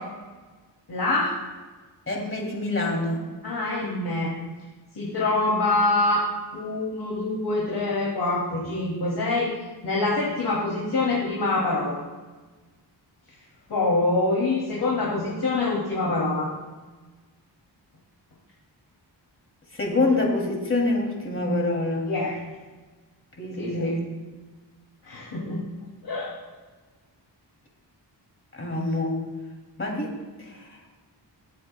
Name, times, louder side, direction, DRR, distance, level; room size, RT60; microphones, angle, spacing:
voice 1, 0.9-1.3 3.4-4.3 5.0-6.3 6.5-9.5 9.8-12.0 13.7-16.5 22.1-22.4 23.6-24.0 25.0-25.6 26.0-26.4, left 2 dB, 60° left, -5 dB, 2.6 m, -25 dB
voice 2, 2.1-3.2 19.7-22.1 23.4-24.1 28.5-29.2 29.8-30.1 30.4-30.8, left 2 dB, 30° left, 0 dB, 2.6 m, -26 dB
21.0 x 8.4 x 2.2 m, 1.3 s
wide cardioid pair, 105°, 44 cm